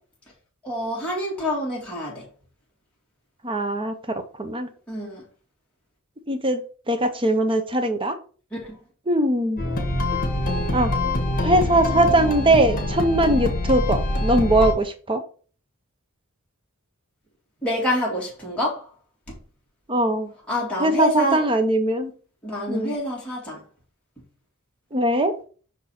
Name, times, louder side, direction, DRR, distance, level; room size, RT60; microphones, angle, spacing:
voice 1, 0.6-2.2 4.9-5.2 8.5-8.8 17.6-18.9 20.5-21.4 22.4-23.6, left 1 dB, 5° left, 2.1 m, -27 dB
voice 2, 3.4-4.7 6.3-8.2 9.1-9.7 10.7-11.0 11.4-15.2 19.9-20.3 20.8-22.1 22.7-23.0 24.9-25.3, right 1 dB, 25° right, 0.8 m, -21 dB
sound 1, 9.6-14.7, left 2 dB, 40° left, 1.6 m, -24 dB
6.1 x 4.0 x 4.3 m
head